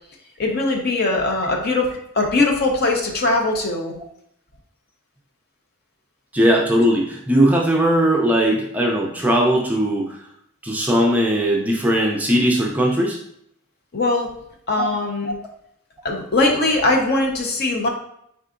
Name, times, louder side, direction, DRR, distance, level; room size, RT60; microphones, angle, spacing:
voice 1, 0.4-3.9 13.9-14.3 14.7-15.4 16.0-17.9, left 2 dB, 45° left, 2 dB, 0.7 m, -21 dB
voice 2, 6.3-10.2 10.6-13.2 14.8-14.9, equal, 5° right, -1 dB, 0.4 m, -19 dB
4.5 x 3.7 x 2.5 m, 0.74 s
head